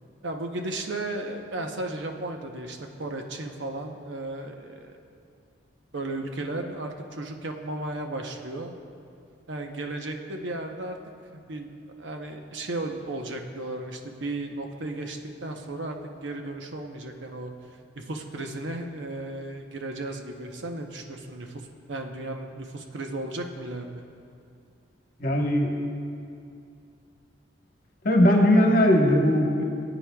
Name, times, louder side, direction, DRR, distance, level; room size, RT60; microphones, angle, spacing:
voice 1, 0.2-5.0 5.9-8.7 9.5-11.0 11.3-11.7 12.0-17.5 18.0-21.6 21.9-24.0, right 2 dB, 75° right, 3 dB, 0.8 m, -34 dB
voice 2, 25.2-25.8 28.0-29.6, equal, 50° left, 0 dB, 1.2 m, -19 dB
18.5 x 9.0 x 2.3 m, 2.5 s
head